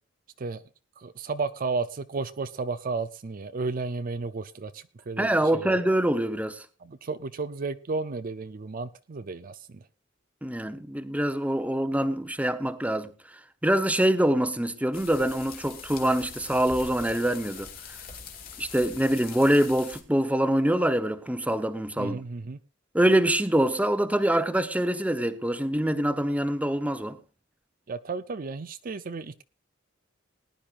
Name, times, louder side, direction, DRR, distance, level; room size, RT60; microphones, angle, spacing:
voice 1, 1.0-5.8 6.8-9.6 22.0-22.6 27.9-29.4, right 4 dB, 45° right, 0.5 m, -33 dB
voice 2, 5.2-6.6 10.4-13.1 13.6-17.7 18.6-22.2 22.9-27.2, right 1 dB, 5° right, 0.8 m, -25 dB
sound 1, 14.9-20.0, left 6 dB, 50° left, 2.3 m, -43 dB
20.0 x 10.5 x 2.5 m
head